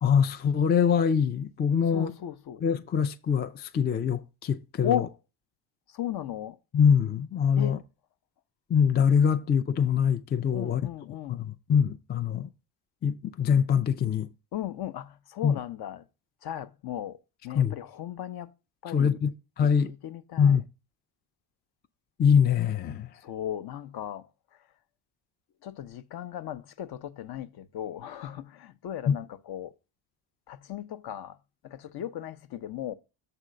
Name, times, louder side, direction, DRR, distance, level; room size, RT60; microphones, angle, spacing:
voice 1, 0.0-2.1 2.6-5.0 6.7-7.8 8.7-10.8 11.3-12.5 13.0-14.3 15.4-15.6 17.6-17.7 18.9-19.3 19.6-19.9 20.4-20.6 22.2-23.1 29.1-29.2, left 7 dB, 25° left, 0.4 m, -24 dB
voice 2, 1.9-2.6 4.8-5.1 5.9-6.6 7.6-7.8 10.5-11.4 14.5-16.0 16.4-17.2 17.4-18.5 18.8-19.2 19.9-20.6 23.2-24.3 25.6-29.7 30.5-31.4 31.6-32.9, left 11 dB, 50° left, 0.7 m, -36 dB
6.8 x 3.6 x 6.2 m
cardioid pair, 95°, 48 cm